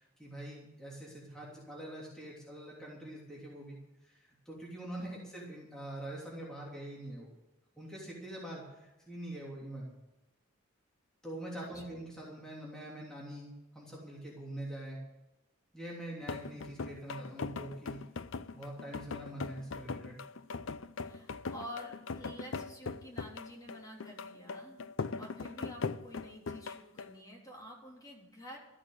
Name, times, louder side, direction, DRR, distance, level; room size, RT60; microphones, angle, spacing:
voice 1, 0.0-7.3 7.8-9.9 11.2-13.5 13.7-15.0 15.7-18.0 18.5-20.2, right 1 dB, 5° left, -5 dB, 3.1 m, -44 dB
sound 1, 16.2-27.2, left 4 dB, 65° left, 0.5 m, -40 dB
voice 2, 21.0-24.8 25.2-28.6, left 1 dB, 20° left, -2 dB, 3.5 m, -49 dB
14.0 x 8.8 x 7.9 m, 0.99 s
head